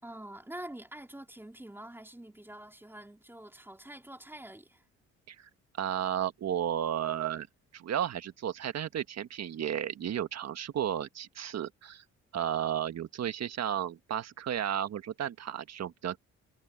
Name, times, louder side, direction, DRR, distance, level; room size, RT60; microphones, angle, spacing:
voice 1, 0.0-4.8, right 1 dB, 5° right, 3.5 m, -46 dB
voice 2, 5.8-7.5 7.7-12.0 12.3-16.2, right 10 dB, 60° right, 1.5 m, -33 dB
cardioid pair, 90°, 30 cm